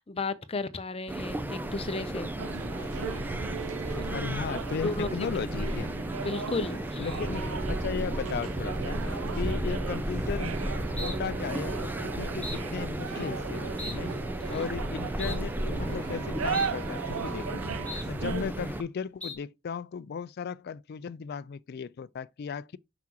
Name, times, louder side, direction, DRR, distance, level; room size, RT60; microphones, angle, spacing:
voice 1, 0.0-2.3 4.1-4.2 4.8-5.1 6.2-7.2 14.4-14.6, left 3 dB, 25° left, 0.7 m, -34 dB
sound 1, 1.1-18.8, right 1 dB, 10° right, 0.5 m, -34 dB
sound 2, 2.0-2.4 2.8-3.2 3.7-4.1 4.5-5.0 5.5-5.9 6.3-6.8 7.1-7.6 8.1-8.4 8.9-9.3 10.1-10.5 11.0-11.2 11.5-11.9 12.4-12.6 13.0-13.4 13.8-14.0 14.4-14.7 15.2-15.4 15.7-16.2 16.5-16.7 17.0-17.5 17.8-18.1 18.4-18.9 19.2-19.3, left 2 dB, 5° left, 1.3 m, -43 dB
sound 3, 2.4-18.5, right 6 dB, 85° right, 0.5 m, -38 dB
voice 2, 4.1-5.9 7.0-9.0 9.3-10.5 10.9-14.1 14.5-17.6 18.0-22.8, left 6 dB, 50° left, 0.3 m, -36 dB
5.9 x 5.9 x 3.0 m
head